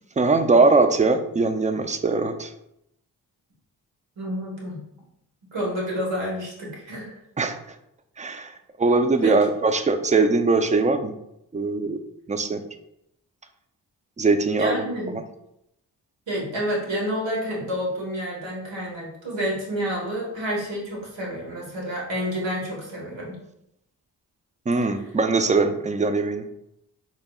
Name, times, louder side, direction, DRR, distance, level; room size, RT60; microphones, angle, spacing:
voice 1, 0.2-2.5 7.4-7.6 8.2-8.5 8.8-11.1 11.5-12.0 12.3-12.6 14.2-14.8 15.1-15.2 24.7-26.4, right 3 dB, 20° right, 8 dB, 0.4 m, -21 dB
voice 2, 4.2-4.8 5.5-7.2 9.2-9.4 14.6-15.2 16.3-23.4, equal, 75° right, -3 dB, 1.5 m, -29 dB
4.6 x 2.8 x 2.3 m, 0.80 s
supercardioid pair, 40°, 45 cm